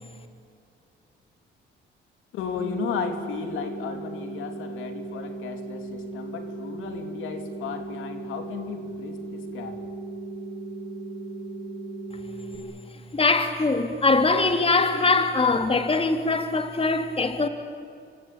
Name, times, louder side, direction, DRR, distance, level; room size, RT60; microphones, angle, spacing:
voice 1, 2.3-9.9, left 6 dB, 85° left, 3.2 m, -34 dB
sound 1, 2.6-12.6, right 2 dB, 5° right, 6.5 m, -37 dB
voice 2, 13.1-17.5, left 3 dB, 30° left, 2.7 m, -22 dB
27.5 x 25.0 x 8.8 m
cardioid pair, 90°, 20 cm